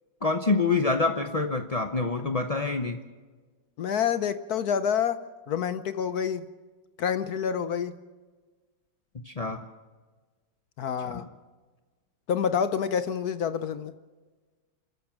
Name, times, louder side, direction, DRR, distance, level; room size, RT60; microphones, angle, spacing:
voice 1, 0.2-3.0 9.3-9.6 11.1-11.2, left 3 dB, 45° left, 6 dB, 0.5 m, -26 dB
voice 2, 3.8-6.5 7.0-8.0 10.8-11.2 12.3-13.9, left 7 dB, 60° left, 13 dB, 1.1 m, -28 dB
28.5 x 13.5 x 7.4 m, 1.3 s
omnidirectional pair, 2.1 m